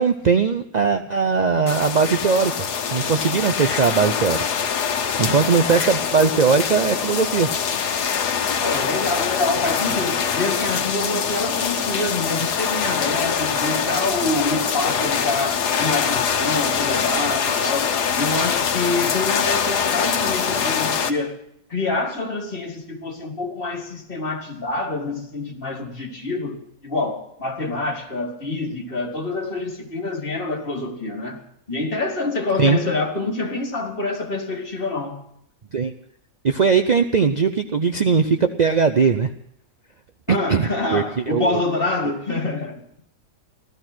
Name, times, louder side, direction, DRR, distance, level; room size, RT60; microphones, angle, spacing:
voice 1, 0.0-4.4 4.8-4.9 5.2-7.5 32.6-32.8 35.7-35.9 36.4-39.3 40.3-41.6, right 5 dB, 70° right, 0.4 m, -20 dB
sound 1, 1.7-21.1, left 7 dB, 80° left, 1.6 m, -23 dB
voice 2, 8.6-21.4 21.7-31.4 31.7-35.2 40.3-42.8, left 2 dB, 35° left, 2.2 m, -26 dB
16.0 x 13.5 x 6.1 m
omnidirectional pair, 1.7 m